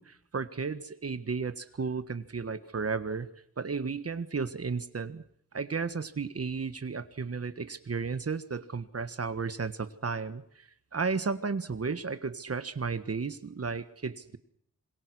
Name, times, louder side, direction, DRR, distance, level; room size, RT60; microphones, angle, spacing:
voice 1, 0.0-3.3 3.6-5.2 5.5-14.4, right 5 dB, 50° right, 12 dB, 1.5 m, -34 dB
26.5 x 22.5 x 6.2 m, 0.68 s
wide cardioid pair, 110°, 31 cm